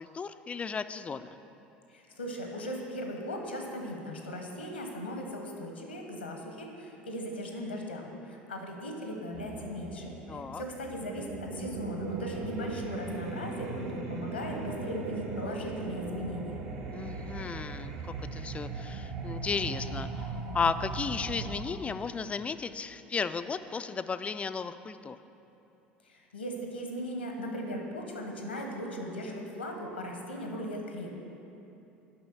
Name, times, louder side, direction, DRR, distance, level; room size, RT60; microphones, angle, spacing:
voice 1, 0.0-1.4 10.3-10.6 16.9-25.2, left 5 dB, 20° left, 12 dB, 0.3 m, -34 dB
voice 2, 1.9-16.6 26.0-31.2, equal, 85° left, 2 dB, 1.0 m, -38 dB
sound 1, 9.3-21.6, right 3 dB, 55° right, 0.9 m, -38 dB
6.9 x 5.5 x 6.7 m, 2.9 s
figure-of-eight pair, 65°, 6 cm